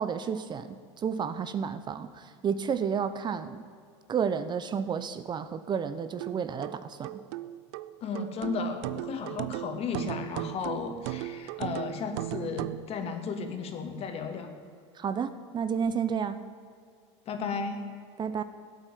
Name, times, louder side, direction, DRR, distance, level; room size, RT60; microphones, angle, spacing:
voice 1, 0.0-3.7 4.1-7.2 14.9-16.4 18.2-18.4, right 7 dB, 30° right, 12 dB, 0.8 m, -31 dB
sound 1, 6.2-12.9, right 15 dB, 65° right, 0.7 m, -37 dB
voice 2, 8.0-14.5 17.3-17.8, left 4 dB, 40° left, 6 dB, 2.5 m, -34 dB
16.0 x 8.9 x 9.3 m, 2.3 s
hypercardioid pair, 100°, 15 cm